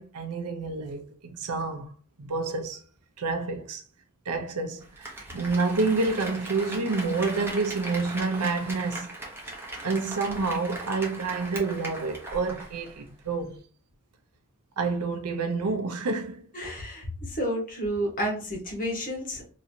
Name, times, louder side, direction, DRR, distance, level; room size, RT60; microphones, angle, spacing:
voice 1, 0.0-1.9 2.2-2.8 3.2-3.8 4.3-9.1 9.8-13.6 14.8-16.5, right 3 dB, 85° right, 0.6 m, -28 dB
Applause, 4.8-13.0 13.3-13.4, right 1 dB, 10° right, 0.8 m, -39 dB
voice 2, 16.5-19.4, equal, 40° left, 1.2 m, -31 dB
3.0 x 2.8 x 2.6 m
head